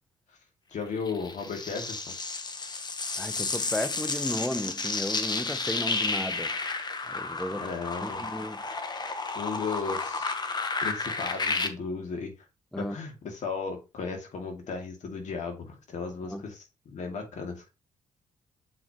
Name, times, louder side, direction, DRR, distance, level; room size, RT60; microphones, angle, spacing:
voice 1, 0.7-2.2 7.6-8.3 9.3-10.3 10.8-12.3 12.7-17.6, left 5 dB, 60° left, 2.3 m, -35 dB
sound 1, 1.1-11.7, left 3 dB, 30° left, 1.0 m, -32 dB
voice 2, 3.2-6.5 7.1-7.7 8.0-8.6 12.7-13.0 16.3-16.5, left 1 dB, 5° left, 0.6 m, -34 dB
7.4 x 4.6 x 3.0 m
cardioid pair, 80°, 14 cm